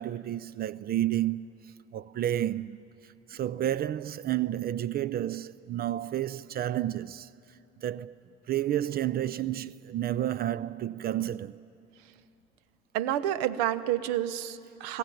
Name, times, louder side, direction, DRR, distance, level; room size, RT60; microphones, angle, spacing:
voice 1, 0.0-2.8 3.0-7.3 7.8-8.2 8.5-11.6, right 12 dB, 45° right, 0.5 m, -31 dB
voice 2, 12.9-15.0, right 12 dB, 85° right, 0.7 m, -29 dB
21.0 x 18.0 x 9.2 m
supercardioid pair, 75°, 21 cm